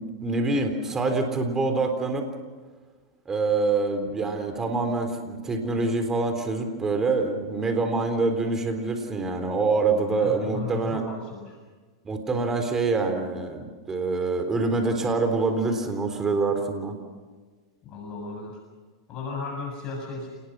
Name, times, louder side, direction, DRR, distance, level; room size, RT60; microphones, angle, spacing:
voice 1, 0.0-2.3 3.3-11.0 12.0-17.0, right 3 dB, 20° right, 6 dB, 3.9 m, -25 dB
voice 2, 10.1-11.6 17.8-18.6 19.1-20.3, left 4 dB, 40° left, 1 dB, 6.9 m, -35 dB
28.5 x 20.0 x 6.3 m, 1.4 s
hypercardioid pair, 115°, 2 cm